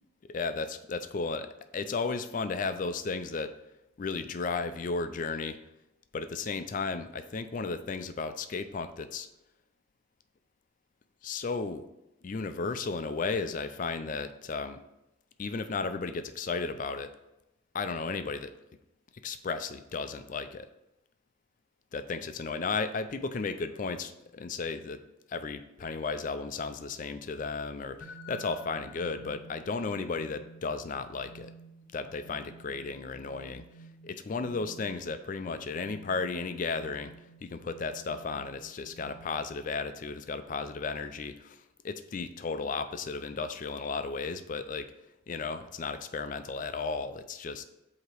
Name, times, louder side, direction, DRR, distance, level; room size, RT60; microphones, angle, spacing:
voice 1, 0.3-3.5 4.0-5.6 6.1-9.3 11.2-11.8 12.2-14.8 15.4-17.1 17.7-18.5 19.2-20.7 21.9-25.0 25.3-31.5 31.9-33.6 34.0-37.1 37.4-41.6 41.8-44.9 45.3-47.6, left 4 dB, 40° left, 10 dB, 0.4 m, -34 dB
sound 1, 28.0-39.7, right 1 dB, 75° left, 0.7 m, -52 dB
8.0 x 2.9 x 4.6 m, 0.92 s
head